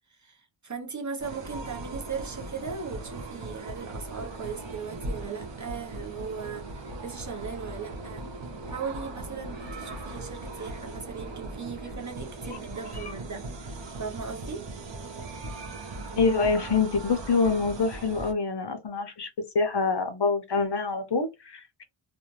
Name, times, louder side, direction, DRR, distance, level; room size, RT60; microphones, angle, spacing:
voice 1, 0.1-8.3 8.6-13.5 14.0-14.7, right 5 dB, 35° right, 0.8 m, -38 dB
sound 1, 1.2-18.3, right 2 dB, 65° right, 0.9 m, -39 dB
voice 2, 16.2-21.8, left 4 dB, 60° left, 0.8 m, -26 dB
2.6 x 2.4 x 3.1 m
wide cardioid pair, 95°, 48 cm